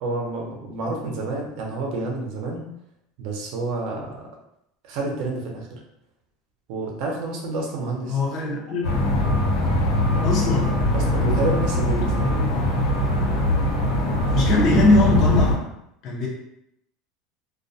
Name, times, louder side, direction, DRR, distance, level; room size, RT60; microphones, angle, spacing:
voice 1, 0.0-2.7 3.2-4.3 4.8-5.8 6.7-8.2 10.9-12.8, right 2 dB, 55° right, 0 dB, 0.6 m, -29 dB
voice 2, 8.1-9.0 10.2-10.8 14.3-15.6 16.0-16.3, left 2 dB, 40° left, -2 dB, 0.6 m, -21 dB
sound 1, 8.8-15.6, left 1 dB, 60° left, 1.2 m, -21 dB
2.2 x 2.2 x 2.6 m, 0.78 s
supercardioid pair, 155°, 0 cm